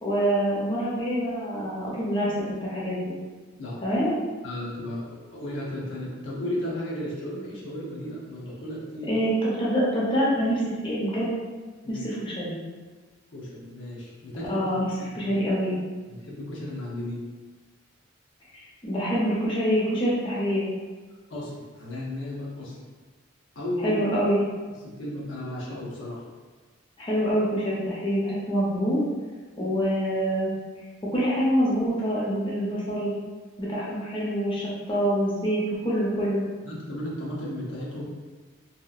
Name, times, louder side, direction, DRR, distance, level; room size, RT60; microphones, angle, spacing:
voice 1, 0.0-2.3 2.6-3.1 3.8-4.2 9.1-11.4 11.9-12.6 14.5-14.9 15.1-15.8 18.5-20.6 23.8-24.4 27.0-29.0 29.6-30.5 31.1-33.1 33.6-34.6 34.9-36.4, equal, 25° left, -7 dB, 0.6 m, -25 dB
voice 2, 4.4-9.2 11.8-12.0 13.3-15.3 16.1-17.3 21.3-22.8 23.6-24.0 24.8-26.2 36.6-38.1, left 1 dB, 70° left, -5 dB, 0.6 m, -34 dB
2.8 x 2.3 x 2.3 m, 1.4 s
head